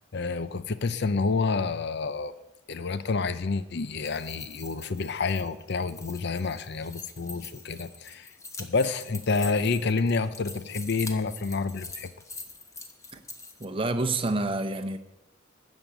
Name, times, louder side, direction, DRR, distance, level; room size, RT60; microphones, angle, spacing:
voice 1, 0.1-2.3 2.7-8.3 8.6-12.1, left 4 dB, 55° left, 0.6 m, -28 dB
sound 1, 3.8-13.7, left 3 dB, 15° left, 1.0 m, -44 dB
voice 2, 13.6-15.0, right 2 dB, 25° right, 0.9 m, -28 dB
13.5 x 5.3 x 8.9 m
head